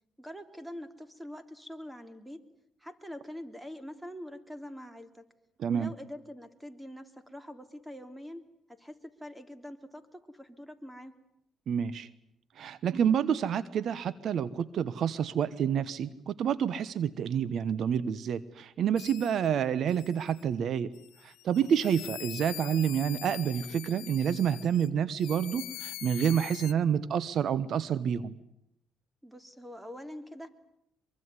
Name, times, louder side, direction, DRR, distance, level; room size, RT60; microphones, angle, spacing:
voice 1, 0.2-2.4 2.8-5.3 5.7-8.4 8.7-11.1 29.2-30.5, equal, 5° right, 10 dB, 3.2 m, -44 dB
voice 2, 5.6-5.9 11.7-12.1 12.6-20.9 21.2-28.4, right 8 dB, 65° right, 18 dB, 1.1 m, -28 dB
sound 1, 19.0-19.5 19.9-20.4 20.9-24.9 25.2-26.7, left 17 dB, 90° left, 1.0 m, -44 dB
24.0 x 23.5 x 9.7 m, 0.78 s
cardioid pair, 80°, 0 cm